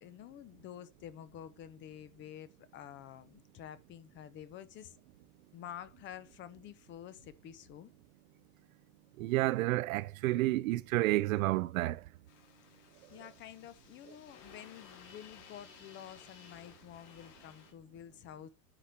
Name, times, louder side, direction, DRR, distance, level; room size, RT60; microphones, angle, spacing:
voice 1, 0.0-5.0 5.5-7.9 13.1-18.5, left 10 dB, 25° left, 0.7 m, -49 dB
voice 2, 9.2-12.0, right 18 dB, 65° right, 0.6 m, -30 dB
sound 1, 12.3-17.7, left 7 dB, 85° left, 4.6 m, -57 dB
9.9 x 5.0 x 5.8 m
supercardioid pair, 145°, 45 cm